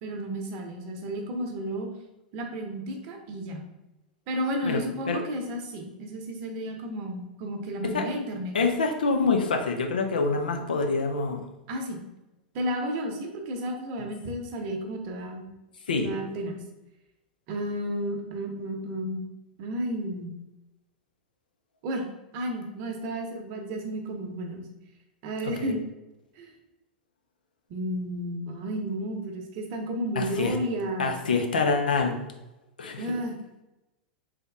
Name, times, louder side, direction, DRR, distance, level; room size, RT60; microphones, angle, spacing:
voice 1, 0.0-1.9 2.3-3.6 4.3-8.5 11.7-12.0 12.5-15.5 16.0-16.6 17.5-19.2 19.6-20.3 21.8-22.0 22.3-24.6 25.2-25.8 26.4-26.5 27.7-31.2 33.0-33.4, equal, 45° right, 3 dB, 0.8 m, -32 dB
voice 2, 8.5-11.4 15.9-16.1 25.6-25.7 30.2-30.6 31.0-32.1 32.8-33.0, left 4 dB, 75° left, 4 dB, 0.6 m, -25 dB
3.5 x 3.0 x 3.5 m, 0.98 s
figure-of-eight pair, 95°, 5 cm